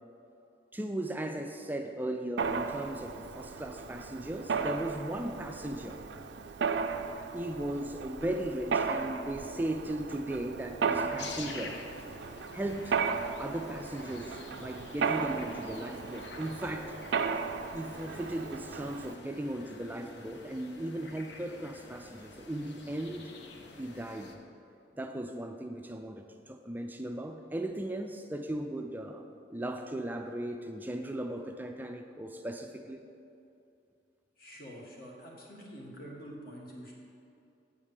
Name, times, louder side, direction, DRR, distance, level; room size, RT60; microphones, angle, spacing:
voice 1, 0.7-6.0 7.3-11.9 12.5-13.0 13.4-17.1 17.7-23.3 23.8-24.3 25.0-33.0, right 1 dB, 10° right, 5 dB, 0.3 m, -37 dB
Mechanisms, 2.4-19.2, right 5 dB, 75° right, 0.4 m, -35 dB
sound 1, 9.4-9.7 10.1-11.6 12.0-13.4 13.9-15.3 15.7-17.0, left 1 dB, 35° left, 0.7 m, -57 dB
sound 2, 11.2-24.4, left 3 dB, 70° left, 0.8 m, -48 dB
voice 2, 34.4-36.9, equal, 55° left, -2 dB, 1.7 m, -46 dB
8.2 x 4.9 x 7.2 m, 2.7 s
head